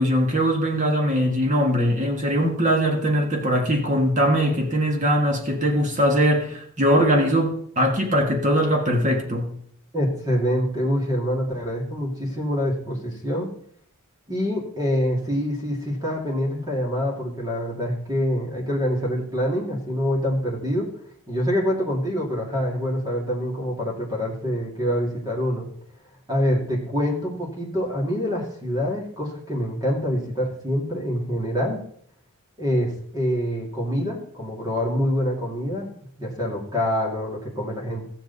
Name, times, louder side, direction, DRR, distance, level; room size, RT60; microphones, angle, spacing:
voice 1, 0.0-9.5, equal, 35° right, 2 dB, 1.8 m, -21 dB
voice 2, 9.9-13.5 14.3-20.9 21.3-25.7 26.3-31.8 32.6-35.9 36.2-38.0, equal, 15° right, -3 dB, 2.6 m, -25 dB
15.0 x 7.7 x 4.1 m, 0.62 s
head